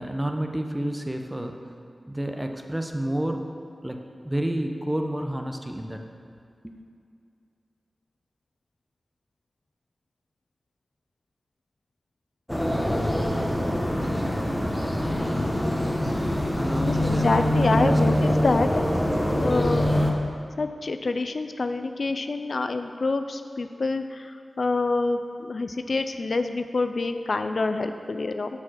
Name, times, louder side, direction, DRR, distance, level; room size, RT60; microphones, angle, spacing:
voice 1, 0.0-1.6 2.1-3.5 3.8-6.0 6.6-6.8 16.5-18.0, right 1 dB, 15° right, 4 dB, 0.8 m, -30 dB
sound 1, 12.5-20.1, left 1 dB, 10° left, 1.1 m, -24 dB
voice 2, 16.9-18.8 19.4-20.0 20.6-28.5, left 3 dB, 65° left, 8 dB, 0.4 m, -27 dB
7.3 x 6.2 x 6.3 m, 2.3 s
wide cardioid pair, 55°, 0 cm